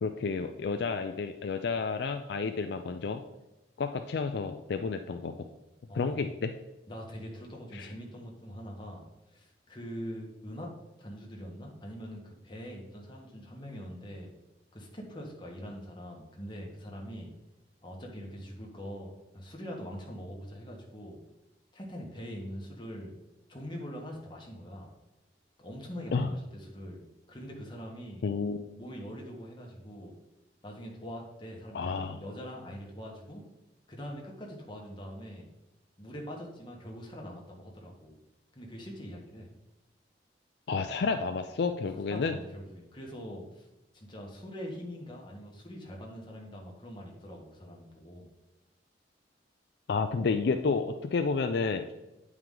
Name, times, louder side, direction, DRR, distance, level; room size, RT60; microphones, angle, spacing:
voice 1, 0.0-3.2 3.8-5.5 5.9-6.5 7.7-7.9 26.1-26.3 28.2-28.6 31.7-32.2 40.7-42.4 49.9-51.9, left 4 dB, 65° left, 7 dB, 0.4 m, -30 dB
voice 2, 5.9-6.2 6.9-10.7 11.0-14.3 14.7-17.3 17.8-21.2 21.7-23.1 23.5-24.9 25.6-27.0 27.3-28.2 28.8-30.1 30.6-33.4 33.9-35.5 36.0-38.1 38.5-39.5 41.8-43.7 43.9-48.3, equal, 25° left, -1 dB, 1.4 m, -43 dB
9.1 x 4.8 x 3.8 m, 1.0 s
head